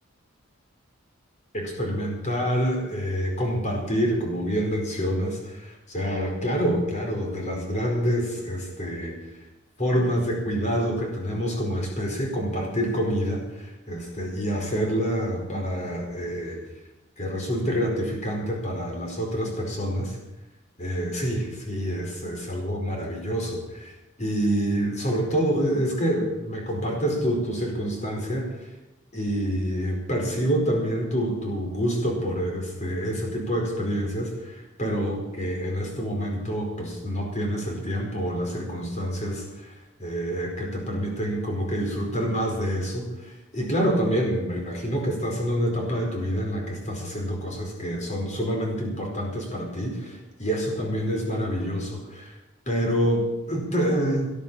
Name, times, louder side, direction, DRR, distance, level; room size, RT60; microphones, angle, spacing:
voice 1, 1.5-9.1 9.8-16.6 17.2-20.2 20.8-23.9 24.2-28.5 29.1-39.7 40.0-52.3 52.7-54.3, equal, 35° left, 0 dB, 4.7 m, -27 dB
18.5 x 11.5 x 5.6 m, 1.0 s
head